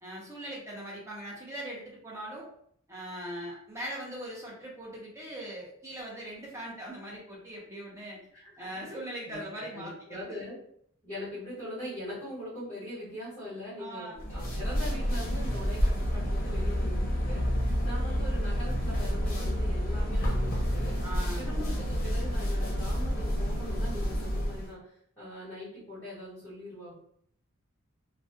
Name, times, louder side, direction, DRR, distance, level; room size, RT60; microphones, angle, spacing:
voice 1, 0.0-2.5 2.9-8.2 8.6-10.4 13.8-14.2 21.0-21.5, right 1 dB, 15° right, -5 dB, 0.7 m, -40 dB
voice 2, 8.3-9.0 9.2-10.6 11.0-21.0 21.3-26.9, left 1 dB, 10° left, -12 dB, 1.2 m, -42 dB
sound 1, 14.2-24.7, equal, 40° left, 0.7 m, -29 dB
2.3 x 2.1 x 2.6 m, 0.66 s
head